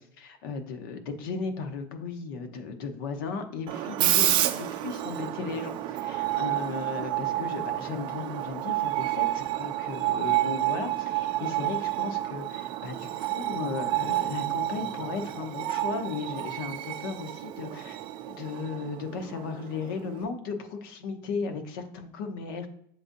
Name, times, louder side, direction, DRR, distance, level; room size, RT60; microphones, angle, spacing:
voice 1, 0.0-18.0 18.3-22.7, left 5 dB, 85° left, 7 dB, 0.8 m, -36 dB
Screech, 3.7-20.2, right 15 dB, 45° right, 0.4 m, -30 dB
7.6 x 2.6 x 2.6 m, 0.68 s
supercardioid pair, 135°, 11 cm